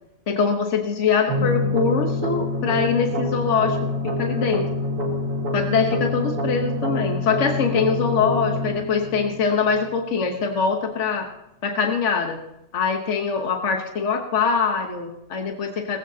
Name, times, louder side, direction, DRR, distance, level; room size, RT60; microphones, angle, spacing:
voice 1, 0.3-3.8 4.0-4.6 5.5-11.3 11.6-12.4 12.7-16.0, left 5 dB, 65° left, 3 dB, 1.5 m, -23 dB
sound 1, 1.3-10.3, left 2 dB, 80° right, 2.3 m, -26 dB
18.0 x 15.0 x 2.8 m, 0.84 s
omnidirectional pair, 1.4 m